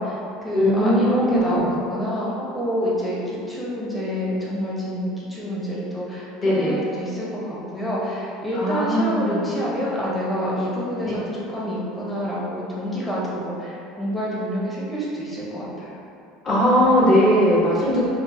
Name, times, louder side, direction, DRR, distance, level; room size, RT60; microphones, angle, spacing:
voice 1, 0.0-16.0, equal, 5° left, -7 dB, 0.9 m, -27 dB
voice 2, 0.5-1.6 6.4-6.8 8.5-9.4 11.0-11.2 16.4-18.1, equal, 30° left, -7 dB, 1.2 m, -19 dB
5.1 x 2.2 x 2.8 m, 2.6 s
supercardioid pair, 115°, 0 cm